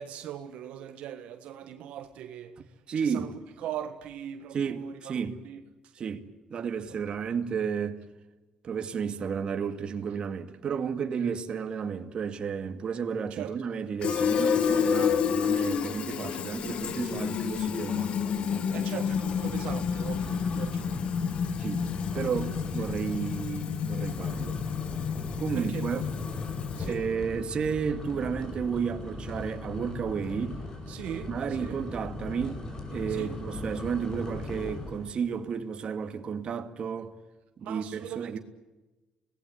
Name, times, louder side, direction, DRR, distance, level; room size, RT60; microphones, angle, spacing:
voice 1, 0.0-2.6 3.0-5.2 5.5-5.6 11.2-11.3 13.3-13.6 18.7-21.0 22.1-22.3 25.5-26.0 26.8-27.0 30.9-31.3 31.6-31.8 33.1-33.4 37.6-38.4, right 10 dB, 80° right, 1.6 m, -40 dB
voice 2, 2.9-3.3 4.5-5.4 5.9-6.2 6.5-8.0 8.6-18.9 21.6-21.8 22.1-24.6 25.4-26.1 26.9-30.6 31.3-37.1 37.6-38.4, right 6 dB, 50° right, 2.3 m, -32 dB
Fill (with liquid), 14.0-27.1, left 7 dB, 55° left, 1.8 m, -30 dB
sound 1, 17.5-17.9 18.3-18.4 19.0-35.2, left 2 dB, 30° left, 5.0 m, -39 dB
25.5 x 18.5 x 9.8 m
cardioid pair, 105°, 2 cm